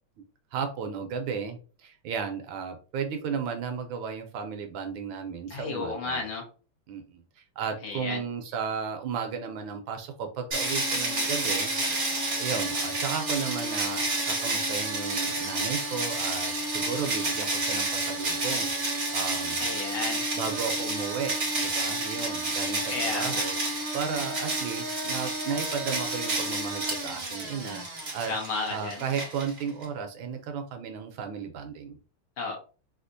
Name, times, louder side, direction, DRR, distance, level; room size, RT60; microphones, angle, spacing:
voice 1, 0.5-6.2 6.9-11.8 12.4-19.6 20.3-23.5 23.9-28.3 28.7-32.0, right 6 dB, 75° right, 5 dB, 1.2 m, -34 dB
voice 2, 5.5-6.5 7.8-8.2 19.6-20.2 22.9-23.5 28.3-29.0 32.4-32.6, left 3 dB, 65° left, 0 dB, 1.7 m, -32 dB
sound 1, 10.5-29.9, right 2 dB, 40° right, 0.7 m, -30 dB
4.2 x 2.4 x 2.5 m, 0.36 s
omnidirectional pair, 2.4 m